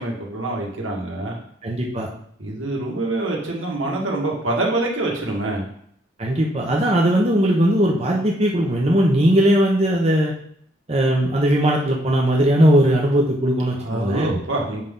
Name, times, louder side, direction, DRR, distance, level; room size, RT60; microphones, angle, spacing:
voice 1, 0.0-1.4 2.4-5.7 13.8-14.8, right 2 dB, 80° right, -2 dB, 2.0 m, -25 dB
voice 2, 1.6-2.1 6.2-10.3 10.9-14.4, right 1 dB, 30° right, -2 dB, 0.9 m, -18 dB
7.6 x 5.6 x 3.8 m, 0.65 s
head